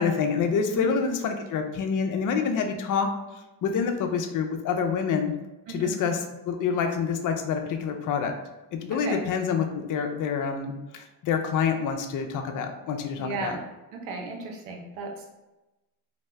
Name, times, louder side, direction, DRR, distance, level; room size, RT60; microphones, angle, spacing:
voice 1, 0.0-3.1 3.6-5.3 5.7-8.3 8.7-13.6, left 6 dB, 40° left, 5 dB, 0.5 m, -27 dB
voice 2, 8.9-9.2 13.2-13.6 13.9-15.3, right 3 dB, 75° right, 1 dB, 0.8 m, -34 dB
2.7 x 2.1 x 3.2 m, 1.0 s
supercardioid pair, 75°, 48 cm